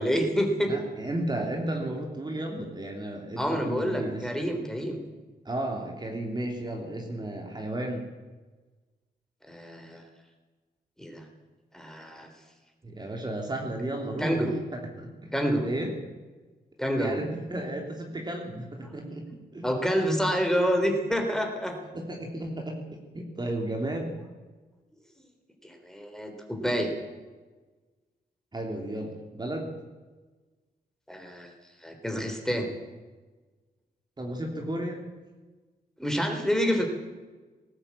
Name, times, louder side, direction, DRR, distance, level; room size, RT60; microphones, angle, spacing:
voice 1, 0.0-0.7 3.4-5.0 9.4-10.0 11.0-11.3 11.7-12.3 14.2-14.6 15.3-15.7 16.8-17.2 19.6-21.8 25.6-26.9 31.1-31.5 31.8-32.7 36.0-36.9, equal, 5° left, 4 dB, 3.8 m, -28 dB
voice 2, 0.7-4.3 5.4-8.1 12.8-14.4 14.7-15.1 15.6-15.9 17.0-19.2 19.5-19.6 21.9-24.2 28.5-29.7 34.2-35.0, right 1 dB, 25° right, 1 dB, 3.2 m, -33 dB
19.0 x 16.0 x 8.6 m, 1.3 s
wide cardioid pair, 110°, 17 cm